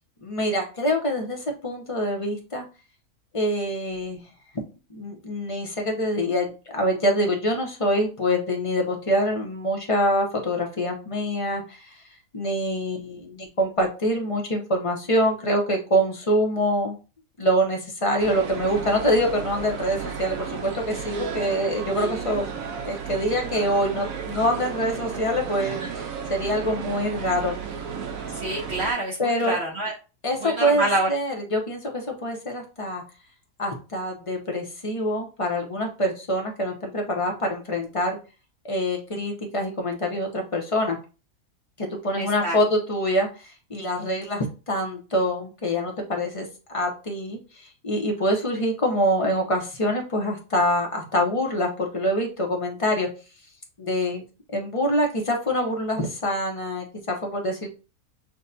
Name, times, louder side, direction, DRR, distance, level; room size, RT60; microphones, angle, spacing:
voice 1, 0.2-2.6 3.3-4.2 4.9-12.0 12.3-17.0 17.4-22.4 22.8-27.5 29.2-29.6 30.2-33.0 33.6-38.2 38.6-41.0 41.8-46.5 46.7-53.1 53.8-54.2 54.5-57.7, equal, 30° left, 2 dB, 0.6 m, -25 dB
sound 1, 18.2-28.9, right 6 dB, 75° right, 1.1 m, -33 dB
voice 2, 28.4-29.9 30.4-31.1 42.2-42.6, right 2 dB, 50° right, -2 dB, 1.1 m, -27 dB
6.2 x 2.2 x 2.7 m, 0.33 s
omnidirectional pair, 1.5 m